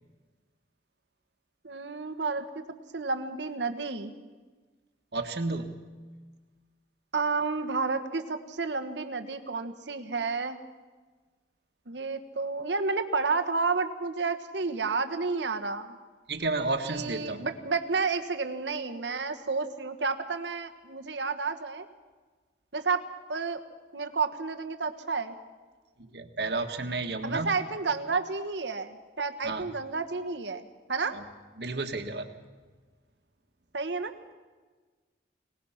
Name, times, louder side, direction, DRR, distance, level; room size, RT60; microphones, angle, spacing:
voice 1, 1.6-2.6 2.9-4.1 7.1-10.6 11.9-16.0 16.8-21.9 22.7-23.0 23.3-23.6 23.9-25.3 27.2-31.2 33.7-34.1, right 4 dB, 90° right, 7 dB, 1.3 m, -31 dB
voice 2, 5.1-5.8 16.3-17.4 26.0-27.6 29.4-29.7 31.1-31.2 31.6-32.3, right 3 dB, 65° right, 6 dB, 1.6 m, -32 dB
24.0 x 18.5 x 5.8 m, 1.4 s
head